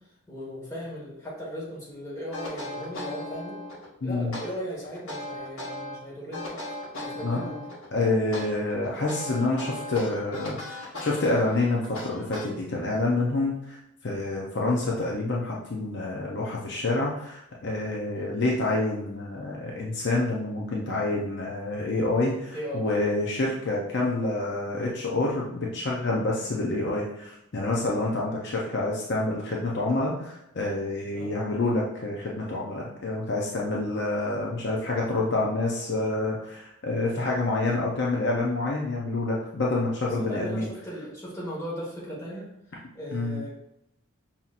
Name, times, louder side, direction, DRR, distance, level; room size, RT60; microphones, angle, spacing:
voice 1, 0.3-3.6 4.0-6.6 6.9-7.7 18.1-18.3 22.5-22.9 31.1-31.3 40.0-42.5 42.9-43.5, equal, 15° left, -6 dB, 1.4 m, -37 dB
sound 1, 2.3-3.9 4.3-6.0 6.3-7.9 8.3-12.9, left 1 dB, 70° left, 1.1 m, -37 dB
voice 2, 4.0-4.3 7.2-7.5 7.9-13.8 14.0-40.7 43.1-43.4, left 2 dB, 50° left, -3 dB, 0.5 m, -27 dB
5.5 x 2.8 x 2.4 m, 0.83 s
head